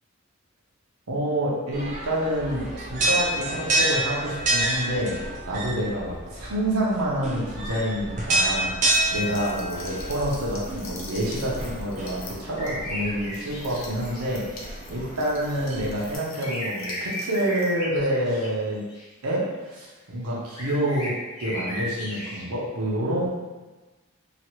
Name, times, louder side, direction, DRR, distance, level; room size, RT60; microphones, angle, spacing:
voice 1, 1.1-18.8 19.2-19.4 19.7-21.1 21.4-23.3, equal, 85° right, -5 dB, 0.8 m, -28 dB
sound 1, 1.7-16.2, right 1 dB, 35° right, 0.4 m, -29 dB
sound 2, 8.9-17.7, left 3 dB, 65° left, 0.5 m, -44 dB
sound 3, 12.6-14.2 16.3-18.5 18.9-19.0 20.6-22.4, equal, 90° left, 1.1 m, -34 dB
2.9 x 2.4 x 2.9 m, 1.2 s
head